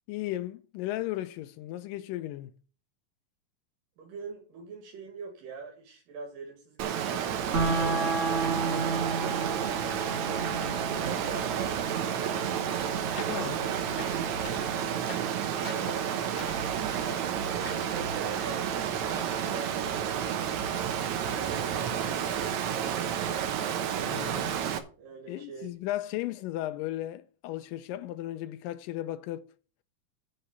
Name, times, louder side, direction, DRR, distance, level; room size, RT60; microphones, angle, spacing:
voice 1, 0.1-2.5 13.3-13.6 24.1-24.6 25.3-29.5, left 14 dB, 85° left, 2.2 m, -35 dB
voice 2, 4.0-10.6 10.9-11.8 13.3-13.8 14.1-16.1 16.8-20.2 20.9-23.5 25.0-25.7, right 5 dB, 85° right, 3.6 m, -44 dB
Water, 6.8-24.8, right 9 dB, 65° right, 2.2 m, -31 dB
sound 1, 7.5-17.5, right 3 dB, 30° right, 1.4 m, -34 dB
sound 2, 13.1-19.3, left 4 dB, 40° left, 1.7 m, -44 dB
9.7 x 4.7 x 6.7 m
omnidirectional pair, 3.8 m